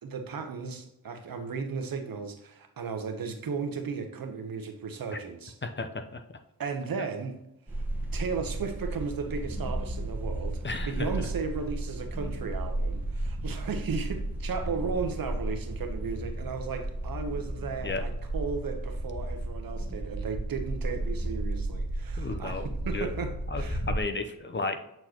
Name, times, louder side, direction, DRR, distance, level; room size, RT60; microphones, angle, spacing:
voice 1, 0.0-5.5 6.6-7.4 8.1-10.6 10.9-23.8, right 5 dB, 70° right, 1.0 m, -35 dB
voice 2, 5.6-6.2 10.6-11.3 17.8-18.0 22.2-22.7 22.9-23.1 23.5-24.8, left 3 dB, 30° left, 0.7 m, -33 dB
sound 1, 7.7-24.0, right 1 dB, 5° right, 1.2 m, -33 dB
7.9 x 4.5 x 2.9 m
cardioid pair, 80°, 36 cm